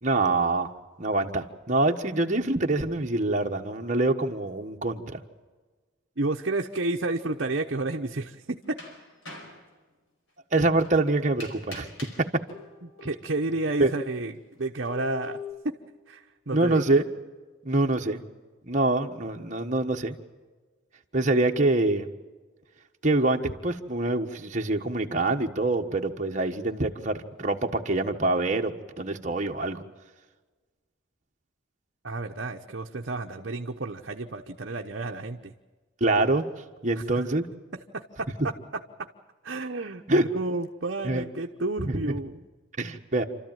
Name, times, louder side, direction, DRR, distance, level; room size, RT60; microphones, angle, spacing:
voice 1, 0.0-0.7 1.0-5.2 10.5-11.9 13.8-13.9 16.5-17.1 17.6-18.2 18.7-20.2 21.1-22.1 23.0-29.8 36.0-36.4 36.8-37.5 40.1-40.3 41.0-41.2 41.9-42.0 42.8-43.2, right 2 dB, 35° right, 3 dB, 1.4 m, -25 dB
voice 2, 6.2-8.8 12.8-15.4 15.6-15.7 16.1-16.8 32.0-35.5 37.0-37.1 37.9-38.5 39.4-40.0 40.3-42.4, right 2 dB, 60° right, 2 dB, 1.0 m, -31 dB
sound 1, 7.2-7.5 8.4-9.7 10.8-10.9 11.4-13.3 13.8-13.9 14.9-15.5, left 4 dB, 80° left, 4.8 m, -42 dB
28.0 x 13.5 x 9.2 m, 1.3 s
head